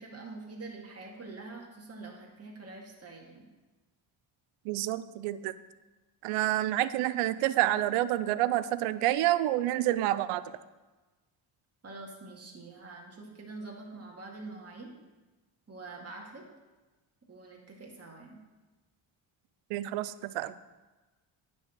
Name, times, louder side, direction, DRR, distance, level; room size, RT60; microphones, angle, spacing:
voice 1, 0.0-3.5 11.8-14.9 15.7-16.4 17.3-18.4, right 3 dB, 30° right, -1 dB, 2.1 m, -45 dB
voice 2, 4.6-5.5 6.2-10.6 19.7-20.6, right 14 dB, 85° right, 15 dB, 0.6 m, -28 dB
9.6 x 4.8 x 6.3 m, 1.2 s
supercardioid pair, 65°, 50 cm